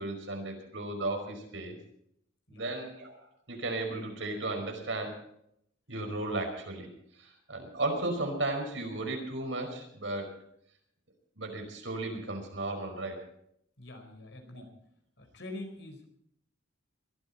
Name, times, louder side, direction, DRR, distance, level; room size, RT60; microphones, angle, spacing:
voice 1, 0.0-1.8 2.5-5.2 5.9-6.9 7.2-10.3 11.4-13.2 14.5-14.6, right 2 dB, 70° right, 3 dB, 5.1 m, -35 dB
voice 2, 13.8-14.7 15.2-16.1, left 2 dB, 65° left, 4 dB, 4.7 m, -44 dB
22.0 x 14.0 x 4.3 m, 0.71 s
head